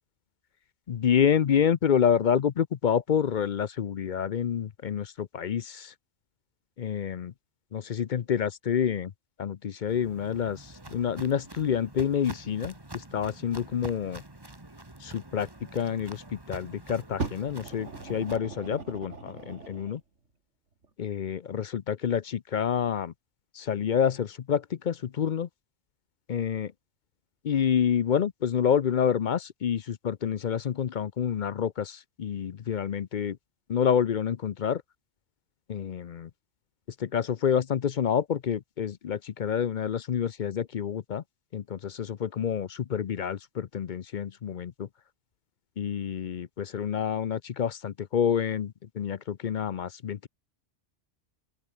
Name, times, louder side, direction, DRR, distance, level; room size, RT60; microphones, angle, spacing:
voice 1, 0.9-5.9 6.8-7.3 7.7-9.1 9.4-14.2 15.0-20.0 21.0-23.1 23.5-25.5 26.3-26.7 27.4-33.4 33.7-34.8 35.7-36.3 37.0-41.2 41.5-44.9 45.8-50.3, left 8 dB, 50° left, 0.6 m, -28 dB
Walk footsteps, 9.9-18.4, right 2 dB, 20° right, 2.0 m, -46 dB
Fire, 17.2-20.0 20.8-20.9, right 4 dB, 80° right, 2.7 m, -38 dB
open air
omnidirectional pair, 1.2 m